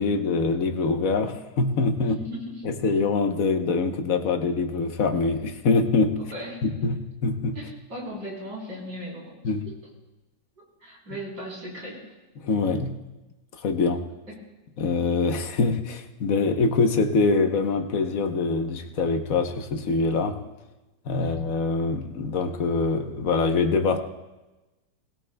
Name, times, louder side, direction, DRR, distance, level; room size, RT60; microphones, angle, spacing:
voice 1, 0.0-2.2 2.6-6.2 6.6-7.6 9.4-9.7 12.4-13.0 13.6-14.1 14.8-20.4 21.0-24.0, left 4 dB, 55° left, 5 dB, 1.3 m, -24 dB
voice 2, 2.0-2.6 6.3-6.6 7.5-9.3 9.6-9.8 10.6-12.0 14.3-14.4 21.2-21.4, equal, 70° right, -3 dB, 4.4 m, -38 dB
21.0 x 16.5 x 2.3 m, 1.1 s
omnidirectional pair, 1.8 m